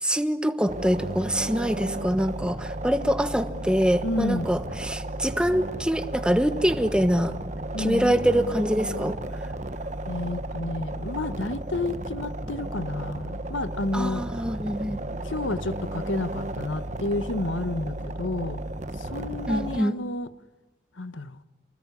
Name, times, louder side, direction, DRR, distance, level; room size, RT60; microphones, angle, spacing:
voice 1, 0.0-7.3 7.8-9.2 13.9-15.0 19.5-20.0, equal, 5° right, 1.3 m, -24 dB
sound 1, 0.7-19.8, right 1 dB, 40° right, 1.2 m, -34 dB
voice 2, 4.0-4.5 7.7-8.1 10.0-14.2 14.7-18.6 19.0-20.3 21.0-21.4, left 2 dB, 90° left, 1.3 m, -31 dB
29.0 x 20.5 x 9.9 m
head